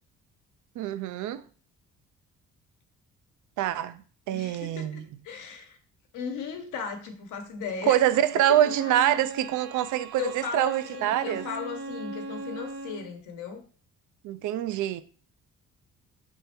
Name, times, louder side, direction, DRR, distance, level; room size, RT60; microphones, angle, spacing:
voice 1, 0.8-1.4 3.6-4.0 4.3-5.0 7.9-11.4 14.2-15.0, right 11 dB, 75° right, 0.5 m, -25 dB
voice 2, 4.3-5.8 6.1-8.1 8.6-8.9 10.2-13.6, left 6 dB, 85° left, 1.0 m, -37 dB
Bowed string instrument, 7.7-13.1, right 2 dB, 60° right, 1.4 m, -40 dB
3.6 x 3.2 x 4.4 m
cardioid pair, 90°, 30 cm